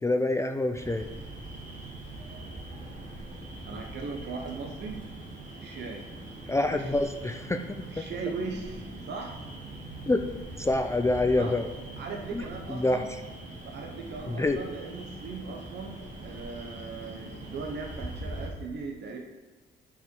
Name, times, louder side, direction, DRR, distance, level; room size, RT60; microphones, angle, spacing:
voice 1, 0.0-1.1 6.5-8.0 10.0-10.2 10.6-11.7 12.3-13.0 14.3-14.6, left 2 dB, 15° left, 6 dB, 0.4 m, -27 dB
sound 1, 0.7-18.5, right 2 dB, 40° right, 2.5 m, -42 dB
voice 2, 3.7-5.0 5.6-6.1 6.6-6.9 7.9-9.4 11.4-11.5 12.0-13.1 13.6-19.2, right 4 dB, 60° right, 1 dB, 1.0 m, -38 dB
9.0 x 4.9 x 4.6 m, 1.3 s
cardioid pair, 90°, 20 cm